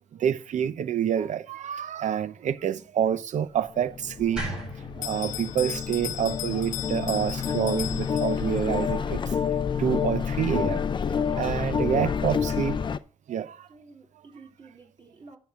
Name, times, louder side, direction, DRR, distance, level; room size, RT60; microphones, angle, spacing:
voice 1, 0.1-4.4 5.0-9.4 9.8-10.8 11.4-12.8 13.3-13.7, right 9 dB, 70° right, 0.7 m, -27 dB
sound 1, 3.8-13.0, left 7 dB, 35° left, 0.5 m, -29 dB
sound 2, 4.4-7.5, right 2 dB, 5° right, 6.1 m, -39 dB
Bell, 5.0-8.7, left 12 dB, 85° left, 0.7 m, -37 dB
voice 2, 11.2-11.6 11.9-12.0 12.6-12.7 13.7-15.4, right 3 dB, 40° right, 3.5 m, -49 dB
10.5 x 4.9 x 6.4 m
cardioid pair, 125°, 13 cm